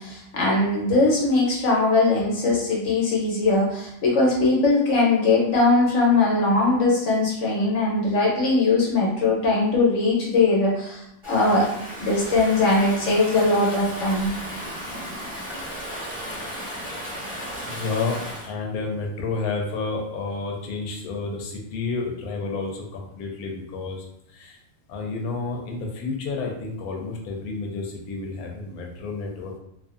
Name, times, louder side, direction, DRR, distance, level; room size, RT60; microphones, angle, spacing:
voice 1, 0.0-11.7 12.0-14.3, left 3 dB, 65° left, -3 dB, 1.1 m, -20 dB
Stream / Ocean, 11.2-18.5, equal, 30° right, 1.0 m, -35 dB
voice 2, 17.6-24.6 24.9-29.6, left 3 dB, 90° left, 1 dB, 1.1 m, -30 dB
2.6 x 2.4 x 2.4 m, 0.77 s
omnidirectional pair, 1.5 m